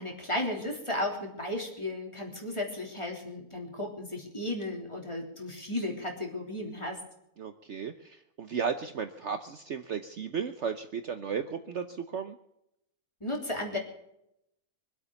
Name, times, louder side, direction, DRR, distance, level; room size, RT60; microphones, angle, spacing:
voice 1, 0.0-7.0 13.2-13.8, left 1 dB, 20° left, 0 dB, 3.4 m, -34 dB
voice 2, 7.4-12.4, right 6 dB, 55° right, 8 dB, 1.0 m, -35 dB
24.5 x 8.3 x 7.0 m, 0.81 s
omnidirectional pair, 1.6 m